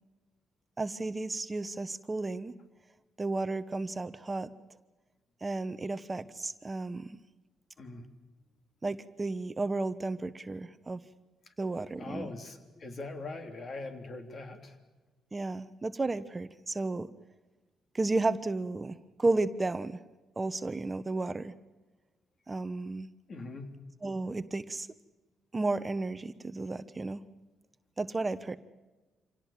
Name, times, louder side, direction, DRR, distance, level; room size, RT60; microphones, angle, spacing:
voice 1, 0.8-2.5 3.2-4.5 5.4-7.2 8.8-11.0 11.6-12.3 15.3-17.1 17.9-20.0 20.4-21.5 22.5-23.1 24.0-24.9 25.5-27.2 28.0-28.6, right 2 dB, 25° right, 12 dB, 1.0 m, -33 dB
voice 2, 7.8-8.1 11.4-11.5 12.0-14.8 23.3-23.8, left 2 dB, 45° left, 6 dB, 3.3 m, -42 dB
26.0 x 17.5 x 7.4 m, 1.2 s
cardioid pair, 90°, 0 cm